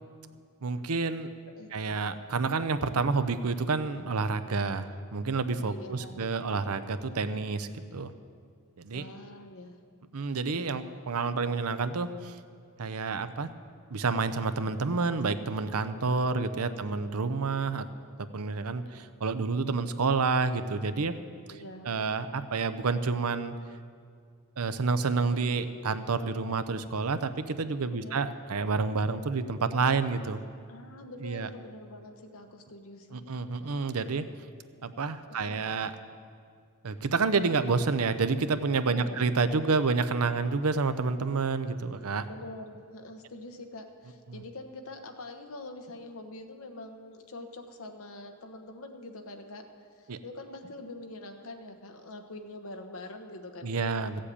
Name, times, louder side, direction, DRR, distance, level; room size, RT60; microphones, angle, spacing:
voice 1, 0.6-1.3 1.7-8.1 8.8-9.1 10.1-12.3 12.8-13.5 13.9-17.9 18.3-21.2 21.8-23.5 24.6-30.4 31.2-31.5 33.1-34.2 34.8-36.0 36.8-42.3 50.1-50.2 53.6-54.3, right 4 dB, 80° right, 11 dB, 0.7 m, -29 dB
voice 2, 5.6-6.2 8.9-9.8 21.5-21.9 27.9-28.2 30.7-33.3 35.3-35.6 38.9-39.3 42.3-49.7 50.0-53.8, left 2 dB, 65° left, 5 dB, 1.2 m, -45 dB
15.0 x 7.6 x 8.5 m, 2.2 s
head